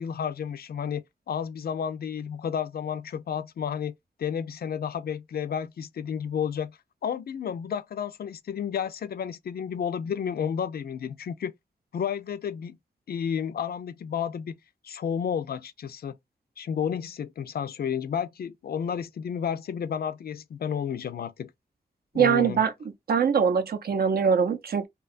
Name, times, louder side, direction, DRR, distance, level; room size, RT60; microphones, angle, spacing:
voice 1, 0.0-11.5 11.9-12.8 13.1-14.5 14.8-16.2 16.6-21.5 22.1-22.6, left 8 dB, 65° left, 0.4 m, -31 dB
voice 2, 22.1-22.7 23.1-24.9, right 7 dB, 65° right, 0.5 m, -22 dB
2.8 x 2.2 x 2.4 m
wide cardioid pair, 85°, 17 cm